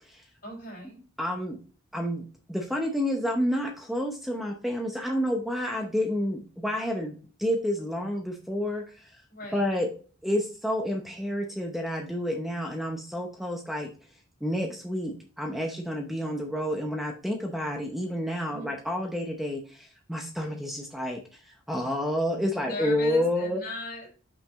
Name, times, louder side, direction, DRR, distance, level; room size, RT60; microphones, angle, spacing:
voice 1, 0.4-1.0 9.3-9.6 18.5-18.7 22.6-24.1, left 1 dB, 45° left, 1 dB, 3.4 m, -38 dB
voice 2, 1.2-1.6 1.9-9.2 9.5-9.9 10.2-13.9 14.4-23.6, equal, ahead, 2 dB, 0.7 m, -29 dB
6.0 x 5.5 x 3.9 m, 0.39 s
head